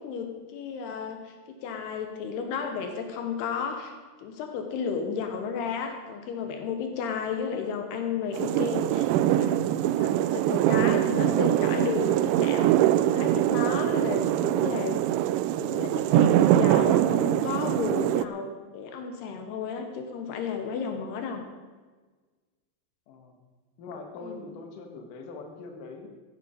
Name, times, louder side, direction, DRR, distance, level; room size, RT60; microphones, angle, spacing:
voice 1, 0.0-3.9 4.2-15.0 15.6-21.4 24.2-24.5, left 6 dB, 80° left, 5 dB, 3.1 m, -33 dB
sound 1, 8.3-18.3, right 13 dB, 85° right, 2.6 m, -23 dB
voice 2, 23.8-26.1, left 3 dB, 60° left, 4 dB, 2.8 m, -42 dB
15.0 x 11.0 x 5.1 m, 1.4 s
omnidirectional pair, 4.7 m